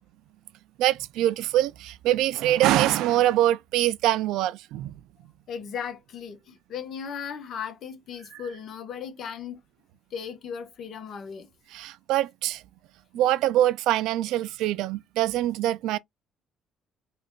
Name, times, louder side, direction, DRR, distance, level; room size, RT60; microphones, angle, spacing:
voice 1, 0.8-5.0 11.7-12.6 13.1-16.0, right 13 dB, 85° right, 0.3 m, -24 dB
voice 2, 5.5-9.6 10.1-11.5, left 7 dB, 50° left, 1.1 m, -36 dB
4.9 x 2.5 x 2.2 m
cardioid pair, 135°, 0 cm